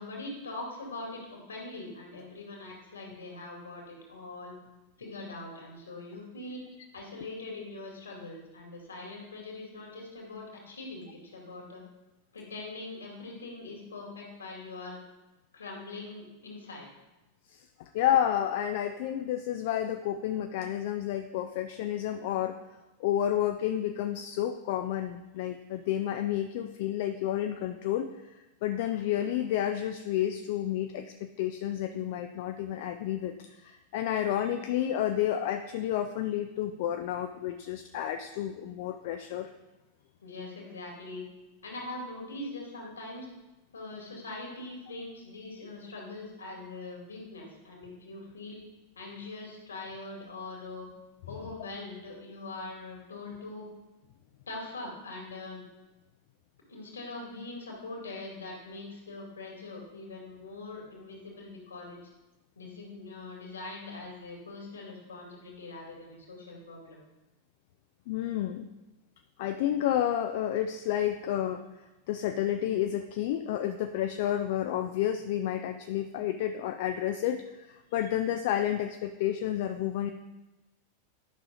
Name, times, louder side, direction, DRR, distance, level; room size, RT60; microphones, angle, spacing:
voice 1, 0.0-4.6 5.0-6.6 6.9-11.8 12.3-15.0 15.5-16.9 40.2-41.3 41.6-43.3 43.7-48.6 49.0-50.9 51.3-53.7 54.5-55.6 56.7-62.0 62.6-67.0, left 2 dB, 70° left, -2 dB, 2.3 m, -42 dB
voice 2, 17.5-22.6 23.0-28.1 28.6-39.5 68.1-68.7 69.4-71.6 72.1-80.1, left 11 dB, 50° left, 7 dB, 0.4 m, -30 dB
11.5 x 6.2 x 2.5 m, 1.0 s
figure-of-eight pair, 90°, 0 cm